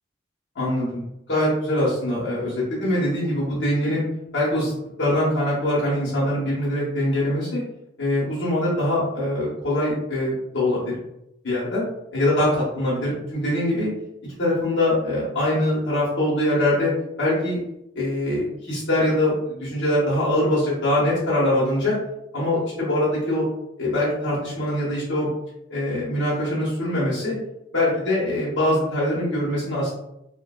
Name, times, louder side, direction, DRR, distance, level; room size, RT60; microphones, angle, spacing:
voice 1, 0.5-1.0 1.3-4.0 4.3-4.7 5.0-7.6 8.0-11.0 11.4-11.8 12.1-13.9 14.4-16.9 17.2-17.6 17.9-22.0 22.3-23.4 23.8-25.3 25.7-27.4 27.7-29.9, left 1 dB, 65° left, -8 dB, 1.0 m, -23 dB
2.8 x 2.4 x 2.2 m, 0.84 s
head